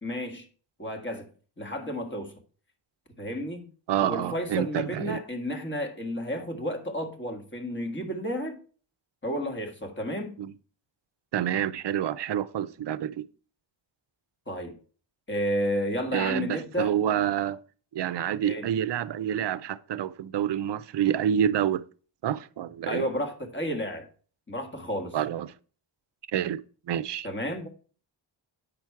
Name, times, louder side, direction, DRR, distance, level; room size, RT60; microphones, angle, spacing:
voice 1, 0.0-0.5 0.8-1.3 1.6-2.3 3.2-3.7 4.0-8.6 9.2-10.4 14.5-14.8 15.3-16.9 18.4-18.7 22.9-24.1 24.5-25.2 27.2-27.7, equal, 25° left, 1.6 m, -32 dB
voice 2, 3.9-5.2 10.4-10.5 11.3-13.2 16.1-17.6 17.9-21.8 22.2-23.0 25.1-25.5 26.3-27.3, right 10 dB, 60° right, 0.5 m, -28 dB
9.1 x 6.0 x 4.6 m
wide cardioid pair, 150°, 47 cm